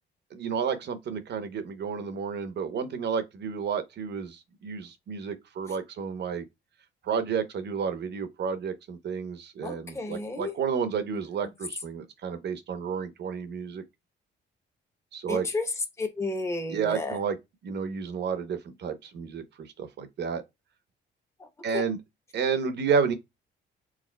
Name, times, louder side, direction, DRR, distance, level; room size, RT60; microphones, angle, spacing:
voice 1, 0.3-6.4 7.0-13.8 15.1-15.5 16.7-17.4 17.6-20.4 21.6-22.0 22.3-23.1, right 6 dB, 60° right, 0.8 m, -31 dB
voice 2, 9.6-10.5 11.1-11.2 15.3-17.2 21.4-21.5 21.7-21.8, left 2 dB, 15° left, 1.0 m, -32 dB
4.8 x 3.6 x 2.2 m
cardioid pair, 90°, 20 cm